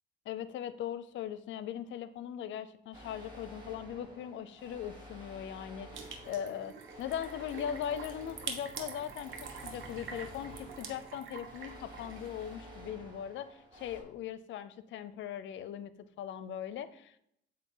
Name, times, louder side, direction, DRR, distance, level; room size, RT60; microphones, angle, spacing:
voice 1, 0.3-15.9 16.2-17.2, left 9 dB, 70° left, 14 dB, 0.5 m, -40 dB
Great Factory Alarm, 2.9-14.0, equal, 20° right, 1.7 m, -51 dB
sound 1, 5.9-12.5, right 5 dB, 75° right, 0.9 m, -46 dB
7.8 x 2.6 x 5.5 m, 0.75 s
cardioid pair, 90°, 20 cm